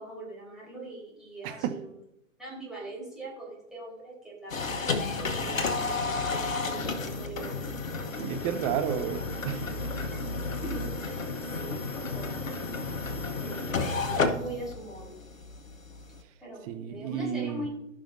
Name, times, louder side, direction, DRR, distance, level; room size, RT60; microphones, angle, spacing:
voice 1, 0.0-1.8 2.4-4.9 5.2-7.7 9.9-10.3 10.6-12.4 13.3-15.2 16.4-17.7, right 1 dB, ahead, -6 dB, 3.8 m, -42 dB
sound 1, 4.5-16.2, left 3 dB, 80° left, 1.3 m, -32 dB
voice 2, 8.2-9.6 16.7-17.7, right 10 dB, 30° right, 8 dB, 0.7 m, -32 dB
16.0 x 5.8 x 2.7 m, 0.83 s
figure-of-eight pair, 115°, 39 cm